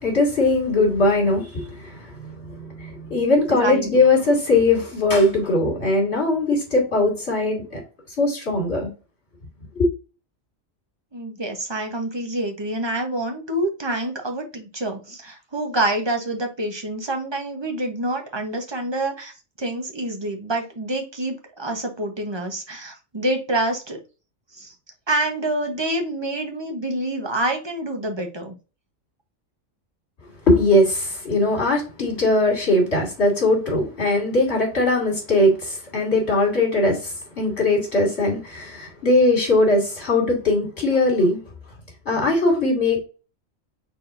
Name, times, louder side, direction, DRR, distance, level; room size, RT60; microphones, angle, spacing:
voice 1, 0.0-7.8 8.2-8.9 9.8-9.9 30.5-41.4 42.1-43.0, left 2 dB, 55° left, 2.9 m, -20 dB
voice 2, 3.5-4.0 11.1-19.3 19.6-24.0 24.5-24.7 25.1-28.5, right 1 dB, 20° right, 1.1 m, -27 dB
4.9 x 4.1 x 2.6 m
omnidirectional pair, 1.3 m